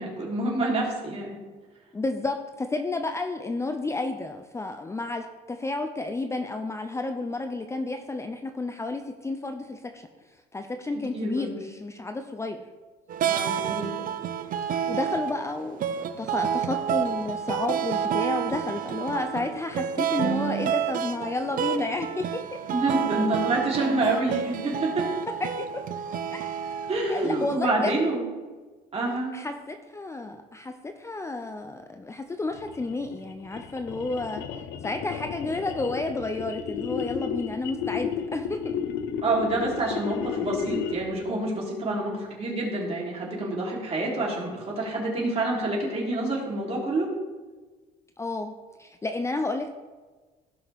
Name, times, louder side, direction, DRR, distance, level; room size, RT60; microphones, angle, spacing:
voice 1, 0.0-1.4 11.1-11.6 13.3-14.0 22.7-25.1 26.9-28.2 28.9-29.3 39.2-47.1, right 2 dB, 40° right, -3 dB, 3.5 m, -27 dB
voice 2, 1.9-10.1 10.5-12.6 14.9-22.6 25.4-25.8 26.3-26.8 27.1-27.9 29.3-34.4 34.8-38.8 48.2-48.5 48.8-49.7, left 2 dB, 15° left, 6 dB, 0.6 m, -31 dB
sound 1, 13.1-27.5, right 8 dB, 55° right, 0.7 m, -29 dB
sound 2, 32.5-41.2, left 7 dB, 85° left, 0.8 m, -33 dB
16.5 x 6.2 x 3.6 m, 1.3 s
cardioid pair, 110°, 17 cm